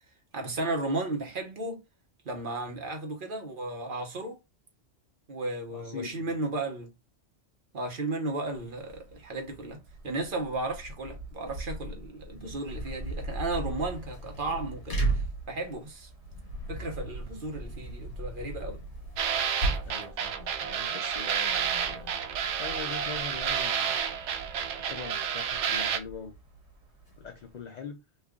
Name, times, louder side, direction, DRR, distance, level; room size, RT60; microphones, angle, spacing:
voice 1, 0.3-1.8 2.2-4.4 5.3-6.9 7.7-9.8 10.0-16.1 16.7-18.8, right 2 dB, 50° right, 1.1 m, -34 dB
voice 2, 5.7-6.3 19.8-23.9 24.7-26.4 27.2-28.0, left 5 dB, 55° left, 0.5 m, -43 dB
sound 1, 8.5-27.6, right 1 dB, 70° right, 1.3 m, -44 dB
sound 2, 12.2-27.6, right 3 dB, 80° left, 1.6 m, -38 dB
sound 3, 19.2-26.0, right 8 dB, 90° right, 0.9 m, -30 dB
3.2 x 2.4 x 3.5 m
omnidirectional pair, 1.1 m